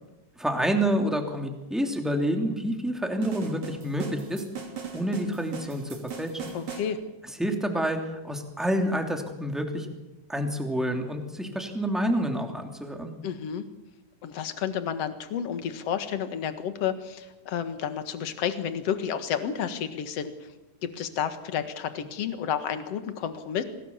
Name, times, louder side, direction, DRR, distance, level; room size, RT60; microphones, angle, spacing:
voice 1, 0.4-4.4 4.9-6.5 7.4-9.9 10.3-13.1, equal, ahead, 3 dB, 2.3 m, -28 dB
sound 1, 3.2-6.9, right 6 dB, 60° right, 4.6 m, -39 dB
voice 2, 6.5-7.0 13.2-13.7 14.2-20.5 20.8-23.6, left 8 dB, 55° left, 9 dB, 2.4 m, -31 dB
26.0 x 18.5 x 7.2 m, 1.0 s
omnidirectional pair, 3.8 m